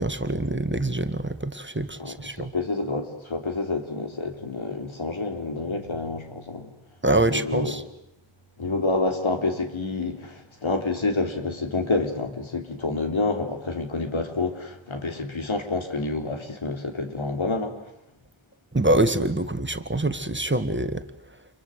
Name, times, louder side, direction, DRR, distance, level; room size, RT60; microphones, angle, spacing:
voice 1, 0.0-2.5 7.0-7.8 18.7-21.0, right 2 dB, 25° right, 9 dB, 1.7 m, -25 dB
voice 2, 2.0-6.7 7.3-7.8 8.6-17.7, left 3 dB, 75° left, 5 dB, 3.7 m, -28 dB
28.5 x 23.0 x 8.1 m, 0.83 s
wide cardioid pair, 60°, 48 cm